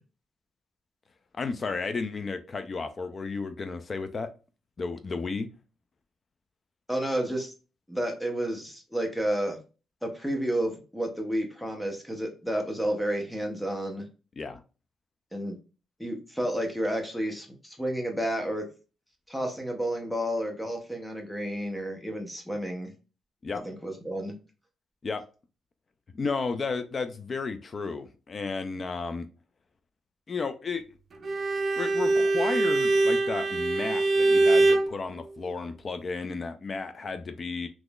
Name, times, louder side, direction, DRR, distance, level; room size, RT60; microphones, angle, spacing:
voice 1, 1.3-4.3 4.8-5.5 14.4-14.6 23.4-23.6 25.0-25.2 26.1-29.3 30.3-30.8 31.8-37.7, left 4 dB, 30° left, 0.3 m, -33 dB
voice 2, 6.9-7.5 7.9-9.6 10.0-14.1 15.3-15.5 16.0-18.7 19.3-22.9 23.6-24.3, equal, 5° left, 0.7 m, -31 dB
Bowed string instrument, 31.2-34.9, right 2 dB, 35° right, 0.5 m, -23 dB
3.7 x 3.0 x 2.3 m
cardioid pair, 165°, 0 cm